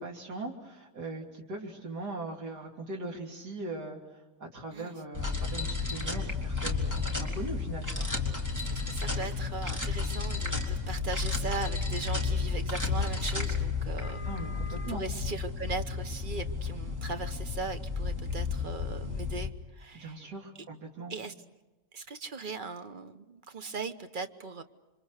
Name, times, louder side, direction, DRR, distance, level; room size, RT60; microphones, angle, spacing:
voice 1, 0.0-8.1 14.2-15.1 19.9-21.1, right 2 dB, 70° right, 0 dB, 3.7 m, -40 dB
sound 1, 5.1-19.5, left 4 dB, 10° right, 3.0 m, -32 dB
voice 2, 8.6-14.2 14.9-20.2 21.1-21.3 21.9-24.6, right 3 dB, 35° right, 8 dB, 1.1 m, -39 dB
28.0 x 25.0 x 6.5 m, 1.1 s
omnidirectional pair, 1.8 m